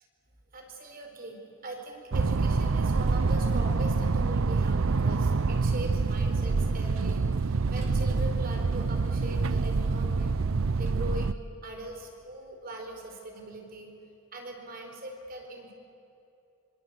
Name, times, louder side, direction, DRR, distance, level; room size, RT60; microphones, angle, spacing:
voice 1, 0.5-10.4 10.8-13.9 14.3-15.7, right 1 dB, 40° right, 3 dB, 4.5 m, -41 dB
sound 1, 2.1-11.3, right 4 dB, 70° right, 0.6 m, -26 dB
26.0 x 25.5 x 8.2 m, 2.7 s
head